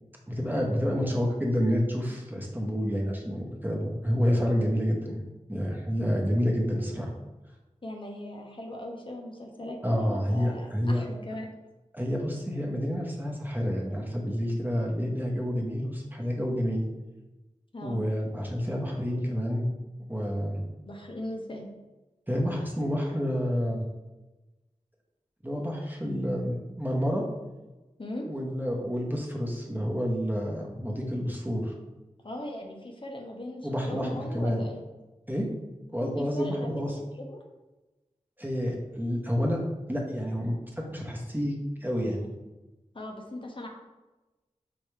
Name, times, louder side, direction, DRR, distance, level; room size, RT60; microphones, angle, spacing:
voice 1, 0.3-5.2 5.5-7.1 9.8-11.0 11.9-16.8 17.8-19.7 20.1-20.7 22.3-23.8 25.4-27.2 28.3-31.7 33.6-34.6 35.3-35.5 35.9-37.0 38.4-39.6 39.9-41.5 41.8-42.3, equal, 15° right, -1 dB, 0.9 m, -29 dB
voice 2, 7.8-11.5 17.7-18.0 20.9-21.7 28.0-28.3 32.2-34.8 36.2-36.9 37.1-37.4 42.9-43.7, left 1 dB, 45° left, 1 dB, 0.7 m, -39 dB
4.7 x 3.4 x 3.2 m, 1.1 s
wide cardioid pair, 50°, 13 cm